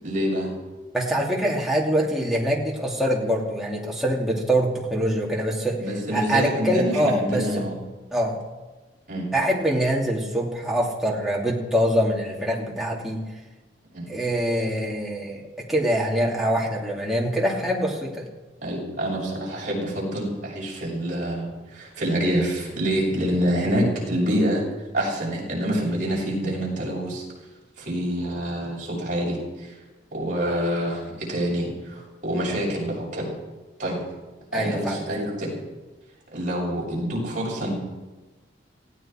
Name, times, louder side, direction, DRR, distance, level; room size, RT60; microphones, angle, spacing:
voice 1, 0.0-0.5 5.8-7.8 9.1-9.3 13.9-14.1 18.6-24.6 24.9-27.2 27.8-29.7 30.1-33.3 33.8-34.0 34.5-35.6 36.3-37.7, equal, 45° right, -4 dB, 6.8 m, -26 dB
voice 2, 0.9-5.8 6.1-7.6 8.1-8.4 9.3-13.2 14.1-18.3 34.5-35.0, equal, ahead, -3 dB, 2.7 m, -24 dB
19.0 x 16.0 x 4.5 m, 1.2 s
head